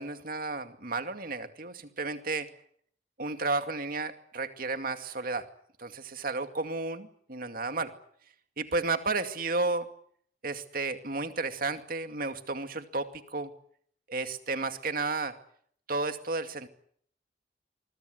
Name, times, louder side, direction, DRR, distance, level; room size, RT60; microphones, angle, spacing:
voice 1, 0.0-2.5 3.2-5.5 5.8-7.9 8.6-9.9 10.4-13.5 14.1-15.3 15.9-16.7, right 3 dB, 55° right, 8 dB, 2.4 m, -32 dB
24.5 x 23.0 x 8.0 m, 0.63 s
head